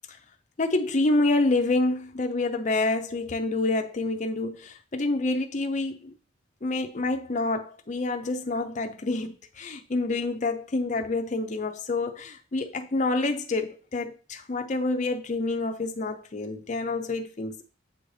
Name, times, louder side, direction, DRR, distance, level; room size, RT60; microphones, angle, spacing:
voice 1, 0.6-6.1 6.6-17.6, left 2 dB, 35° left, 0.5 m, -27 dB
7.8 x 3.2 x 3.9 m
head